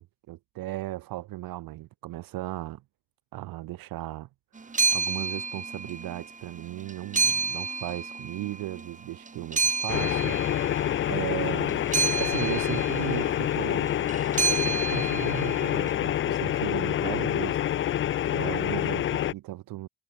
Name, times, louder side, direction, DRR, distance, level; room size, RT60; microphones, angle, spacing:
voice 1, 0.0-2.8 3.3-4.3 4.6-10.4 10.6-10.7 11.1-11.9 12.2-13.9 14.5-17.9 18.3-19.9, right 16 dB, 75° right, 3.1 m, -36 dB
sound 1, 4.6-6.3 6.6-8.9 9.3-15.8, right 4 dB, 20° right, 1.4 m, -30 dB
sound 2, 9.9-19.3, left 11 dB, 35° left, 0.4 m, -27 dB
supercardioid pair, 60°, 35 cm